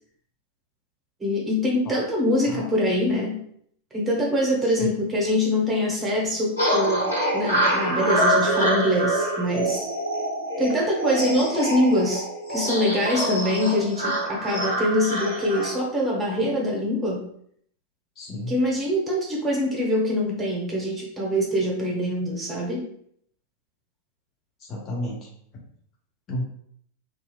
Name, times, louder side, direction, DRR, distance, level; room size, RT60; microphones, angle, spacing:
voice 1, 1.2-3.4 3.9-9.9 10.6-17.3 18.5-22.9, left 1 dB, 15° right, -3 dB, 0.9 m, -24 dB
sound 1, 6.6-15.7, right 1 dB, 75° left, 1.1 m, -25 dB
voice 2, 18.2-18.6 24.7-25.3 26.3-26.4, left 1 dB, 30° left, -3 dB, 0.7 m, -32 dB
2.7 x 2.4 x 2.3 m, 0.66 s
figure-of-eight pair, 90°, 0 cm